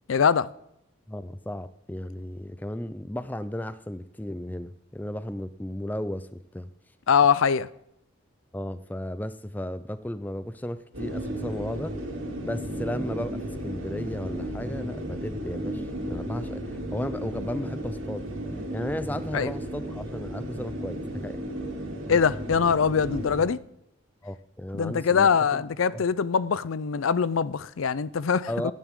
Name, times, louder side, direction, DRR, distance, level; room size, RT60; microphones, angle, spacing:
voice 1, 0.1-0.5 7.1-7.7 19.3-19.5 22.1-23.6 24.7-28.7, left 6 dB, 85° left, 0.5 m, -23 dB
voice 2, 1.1-6.7 8.5-12.0 12.4-18.3 18.7-21.4 24.2-25.6 25.9-26.1 28.5-28.7, left 1 dB, 10° left, 0.4 m, -34 dB
sound 1, 10.9-23.4, equal, 90° right, 2.8 m, -34 dB
16.5 x 10.5 x 3.7 m
head